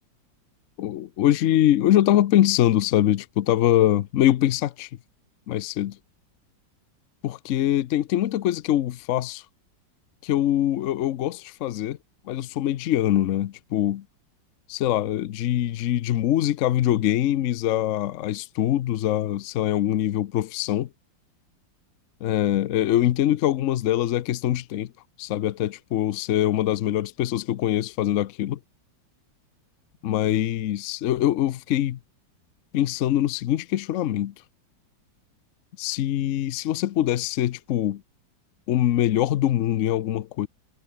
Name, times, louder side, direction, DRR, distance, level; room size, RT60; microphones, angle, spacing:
voice 1, 0.8-4.9 5.5-6.0 7.2-9.4 10.2-12.0 12.3-14.0 14.7-20.9 22.2-24.9 25.2-28.6 30.0-32.0 32.7-34.3 35.8-38.0 38.7-40.5, left 12 dB, 70° left, 0.7 m, -23 dB
omnidirectional pair, 2.1 m